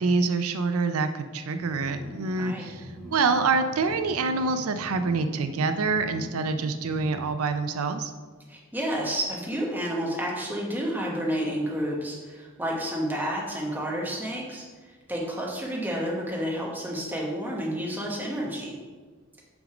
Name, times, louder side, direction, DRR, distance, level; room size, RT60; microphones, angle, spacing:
voice 1, 0.0-8.1, right 4 dB, 90° right, 9 dB, 0.5 m, -26 dB
sound 1, 1.6-7.2, right 1 dB, 10° left, 1.7 m, -43 dB
voice 2, 2.4-2.7 8.5-18.7, equal, 10° right, -3 dB, 1.2 m, -30 dB
6.0 x 5.2 x 4.9 m, 1.4 s
head